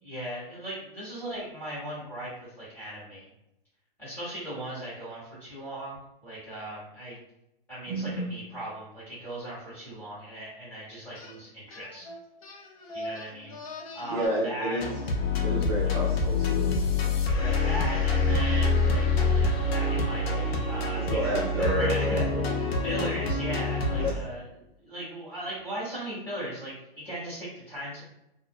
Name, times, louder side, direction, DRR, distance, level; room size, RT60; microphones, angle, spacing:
voice 1, 0.0-3.3 4.0-7.2 7.7-12.1 12.9-13.6 13.9-14.9 15.8-16.0 17.3-24.4 24.8-28.0, right 1 dB, 5° left, -10 dB, 1.2 m, -38 dB
voice 2, 7.9-8.3 14.1-14.9 15.4-16.7 20.9-22.4 24.0-24.2, right 1 dB, 35° right, -6 dB, 0.6 m, -30 dB
sound 1, 11.1-11.4 11.7-14.3, left 1 dB, 40° left, 0.4 m, -41 dB
sound 2, 14.8-24.1, left 3 dB, 80° left, 0.6 m, -26 dB
2.5 x 2.0 x 2.5 m, 0.85 s
hypercardioid pair, 155°, 30 cm